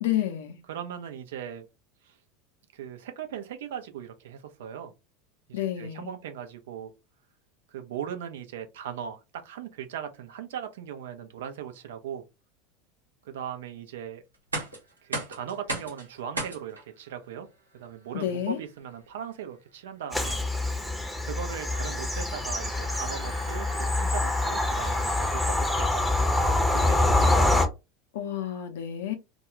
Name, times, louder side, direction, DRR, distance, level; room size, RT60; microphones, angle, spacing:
voice 1, 0.0-0.6 5.5-6.1 18.1-18.6 28.1-29.1, left 11 dB, 70° left, 0.6 m, -30 dB
voice 2, 0.7-1.7 2.0-2.2 2.7-4.9 5.5-6.9 7.7-12.2 13.2-14.2 15.0-17.5 17.7-20.4 21.2-27.5, right 8 dB, 70° right, 0.5 m, -39 dB
sound 1, 14.3-26.2, right 2 dB, 90° right, 0.9 m, -41 dB
Bird vocalization bird call bird song / Train, 20.1-27.7, left 2 dB, ahead, 0.7 m, -25 dB
2.3 x 2.2 x 2.9 m
figure-of-eight pair, 80°, 0 cm